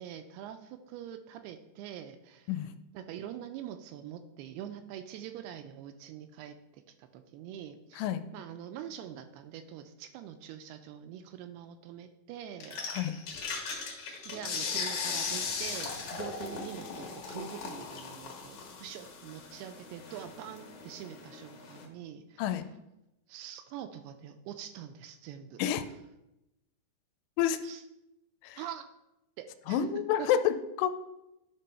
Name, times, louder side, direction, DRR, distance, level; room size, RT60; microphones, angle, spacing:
voice 1, 0.0-2.5 2.9-8.0 8.3-12.8 14.3-22.4 23.3-25.6 27.6-27.8 28.6-28.9 29.4-29.9 30.2-30.3, right 10 dB, 85° right, 8 dB, 2.5 m, -44 dB
sound 1, 12.6-21.9, left 5 dB, 60° left, 2.1 m, -38 dB
voice 2, 29.7-30.9, left 10 dB, 85° left, 9 dB, 2.6 m, -29 dB
11.0 x 3.8 x 5.6 m, 0.91 s
omnidirectional pair, 4.8 m